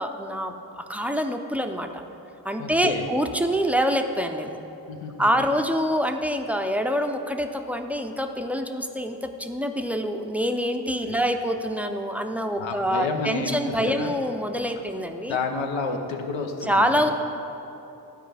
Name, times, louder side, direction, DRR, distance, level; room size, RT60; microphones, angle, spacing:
voice 1, 0.0-2.0 2.4-4.6 5.2-15.4 16.6-17.1, equal, 5° right, 5 dB, 0.5 m, -26 dB
voice 2, 2.6-3.1 4.9-5.3 11.0-11.2 12.6-14.2 15.2-17.1, left 4 dB, 85° left, 4 dB, 0.8 m, -30 dB
12.0 x 4.5 x 3.3 m, 2.9 s
cardioid pair, 50°, 44 cm